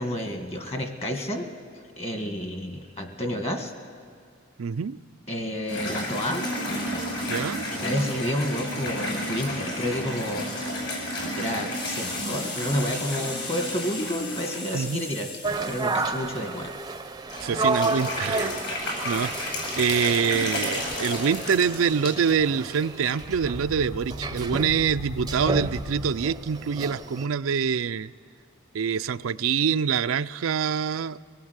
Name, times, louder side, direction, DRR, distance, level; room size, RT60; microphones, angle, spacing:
voice 1, 0.0-1.5 2.0-3.7 5.3-6.5 7.7-10.5 11.4-15.3 15.7-16.7, equal, 30° left, 5 dB, 1.9 m, -30 dB
voice 2, 4.6-5.0 7.3-7.7 14.7-15.0 17.4-18.5 19.0-19.3 19.8-28.1 28.7-31.2, right 6 dB, 80° right, 12 dB, 0.5 m, -25 dB
sound 1, 5.7-17.0 17.3-22.2 22.7-23.1 23.5-23.6 24.6-24.7, left 1 dB, 60° left, 6.6 m, -32 dB
sound 2, 15.4-27.3, right 3 dB, 20° right, 0.6 m, -32 dB
sound 3, 23.2-26.9, equal, 80° left, 1.6 m, -37 dB
23.5 x 18.5 x 8.1 m, 2.2 s
head